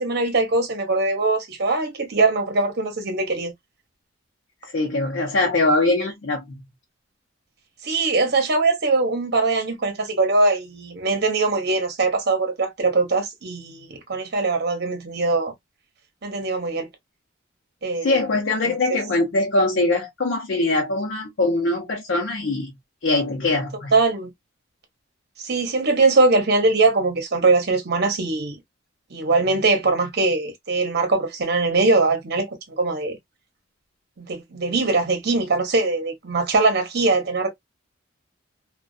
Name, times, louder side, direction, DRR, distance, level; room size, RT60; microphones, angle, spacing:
voice 1, 0.0-3.5 7.8-15.5 16.2-16.9 17.8-18.2 18.6-18.7 23.9-24.3 25.4-28.6 29.1-33.2 34.2-37.5, right 3 dB, 55° right, 0.8 m, -21 dB
voice 2, 4.6-6.6 18.0-22.7 23.0-23.9, left 2 dB, 65° left, 0.7 m, -22 dB
2.4 x 2.3 x 2.3 m
head